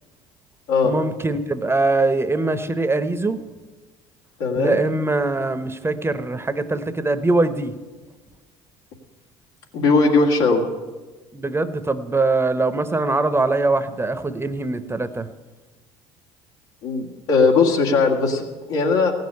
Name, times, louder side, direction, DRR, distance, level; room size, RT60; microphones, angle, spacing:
voice 1, 0.8-3.4 4.6-7.7 11.3-15.3, right 2 dB, 15° right, 11 dB, 0.9 m, -22 dB
voice 2, 4.4-4.8 9.7-10.6 16.8-19.1, left 4 dB, 80° left, 0 dB, 2.0 m, -19 dB
16.0 x 6.6 x 9.6 m, 1.3 s
hypercardioid pair, 75°, 15 cm